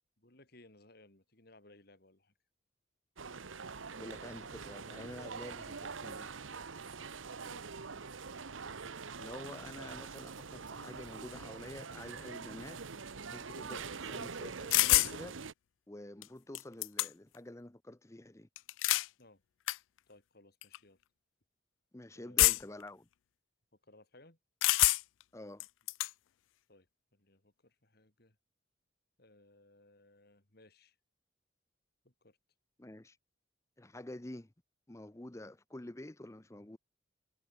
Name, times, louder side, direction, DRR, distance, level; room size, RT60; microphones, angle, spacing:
voice 1, 0.2-2.3 7.3-8.2 19.2-19.4 20.1-21.0 22.1-22.6 23.8-24.4 26.7-26.9 27.1-28.4 29.2-30.9 32.0-32.4, left 2 dB, 55° left, 3.4 m, -62 dB
sound 1, 3.2-15.5, right 5 dB, 90° right, 1.1 m, -44 dB
voice 2, 3.9-6.3 9.2-12.8 13.3-15.4 15.9-18.5 21.9-23.1 25.3-25.7 32.8-33.2 33.8-34.5 34.9-36.8, left 1 dB, 15° left, 0.7 m, -48 dB
sound 2, 14.7-15.1 16.2-16.3 16.5-17.4 18.6-19.1 19.7-19.8 20.6-20.8 22.4-22.8 24.6-25.2 25.6-26.1, left 19 dB, 80° left, 0.3 m, -27 dB
head